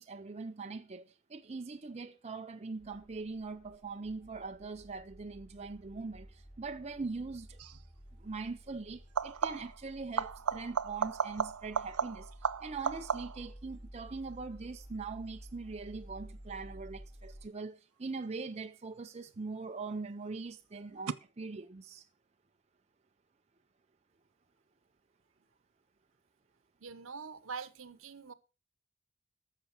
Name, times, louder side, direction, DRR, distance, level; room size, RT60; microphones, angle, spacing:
voice 1, 0.0-7.6 8.2-22.1, right 4 dB, 30° right, 0.5 m, -42 dB
sound 1, 2.8-17.5, equal, 40° left, 3.6 m, -53 dB
sound 2, 7.6-7.9 9.0-9.8 10.2-13.5 19.0-19.6 21.1-21.2, right 6 dB, 85° right, 0.6 m, -35 dB
voice 2, 26.8-28.3, right 5 dB, 65° right, 0.9 m, -44 dB
14.0 x 6.7 x 5.9 m
head